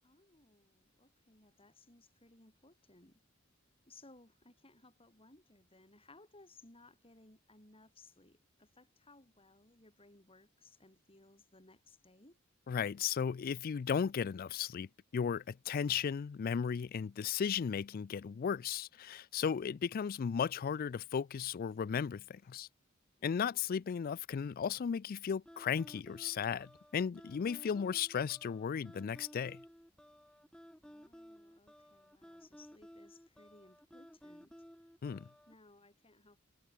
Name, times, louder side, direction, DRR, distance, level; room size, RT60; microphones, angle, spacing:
voice 1, 0.0-3.2 3.9-12.4 23.2-23.8 30.8-34.6 35.5-36.4, left 2 dB, 25° left, 7.3 m, -62 dB
voice 2, 12.7-14.9 15.1-22.7 23.2-29.6 35.0-35.3, left 7 dB, 45° left, 0.3 m, -35 dB
sound 1, 25.5-35.5, equal, 5° left, 2.6 m, -56 dB
head